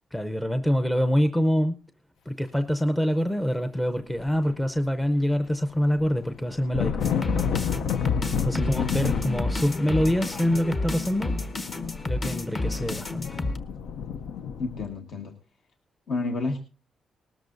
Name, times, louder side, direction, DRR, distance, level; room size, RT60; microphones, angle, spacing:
voice 1, 0.1-1.8 2.3-7.1 8.4-11.4 12.0-13.3, equal, 5° left, 7 dB, 0.6 m, -25 dB
sound 1, 4.1-5.1 5.3-14.9, left 7 dB, 85° left, 0.6 m, -31 dB
sound 2, 7.0-13.6, left 2 dB, 35° left, 1.1 m, -31 dB
voice 2, 14.6-15.3 16.1-16.6, left 3 dB, 65° left, 4 dB, 1.4 m, -30 dB
19.0 x 13.0 x 2.6 m, 0.33 s
cardioid pair, 110°, 0 cm